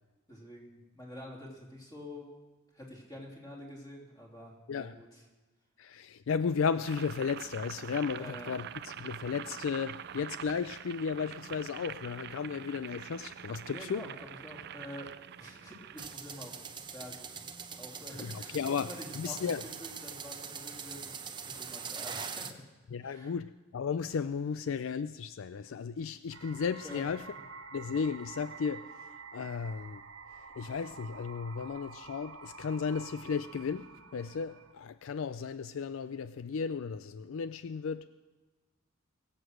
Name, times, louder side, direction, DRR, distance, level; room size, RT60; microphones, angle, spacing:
voice 1, 0.3-2.3 2.7-5.2 8.1-8.5 13.7-14.1 14.4-15.1 15.4-16.6 16.9-17.3 17.8-21.2 21.4-22.6 23.0-23.3 26.8-27.1, left 1 dB, 20° left, -1 dB, 3.1 m, -47 dB
voice 2, 5.8-14.1 18.2-19.6 22.9-27.2 27.7-30.0 30.4-38.1, left 6 dB, 65° left, 14 dB, 0.4 m, -34 dB
Boiling, 6.7-16.2, right 9 dB, 50° right, 0.4 m, -45 dB
sound 1, 16.0-22.5, right 6 dB, 20° right, 0.8 m, -42 dB
sound 2, 26.3-34.7, right 4 dB, 75° right, 1.2 m, -49 dB
21.5 x 8.0 x 6.4 m, 1.2 s
head